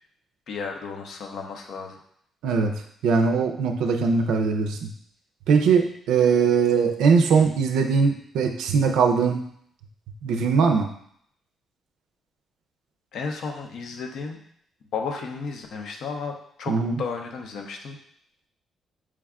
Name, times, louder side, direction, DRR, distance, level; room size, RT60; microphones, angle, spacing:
voice 1, 0.5-2.0 13.1-14.4 14.9-18.0, left 5 dB, 70° left, 3 dB, 0.6 m, -33 dB
voice 2, 2.4-4.9 5.5-9.4 10.2-10.9 16.7-17.0, right 5 dB, 90° right, 5 dB, 0.4 m, -21 dB
4.6 x 2.2 x 3.5 m, 0.66 s
cardioid pair, 100°, 0 cm